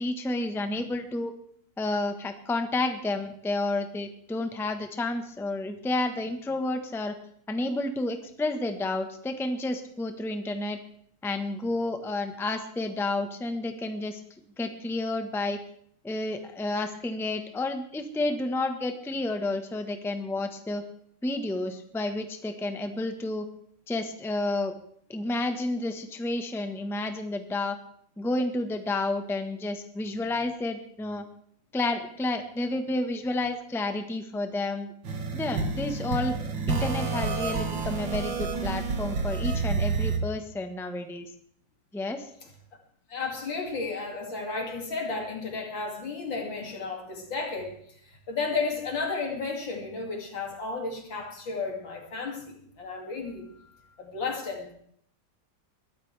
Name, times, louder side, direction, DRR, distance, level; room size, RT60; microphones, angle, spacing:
voice 1, 0.0-1.3 1.8-7.2 7.5-10.8 11.2-14.2 14.6-15.6 16.0-20.8 21.2-23.5 23.9-24.7 25.1-27.8 28.2-31.2 31.7-34.9 35.3-36.3 36.7-41.3 41.9-42.3, left 2 dB, ahead, 6 dB, 0.9 m, -30 dB
sound 1, 35.0-40.2, right 4 dB, 90° right, 2.4 m, -29 dB
voice 2, 43.1-47.8 48.0-53.5 54.0-54.7, left 4 dB, 85° left, 2 dB, 3.4 m, -33 dB
21.5 x 13.5 x 3.4 m, 0.65 s
omnidirectional pair, 2.0 m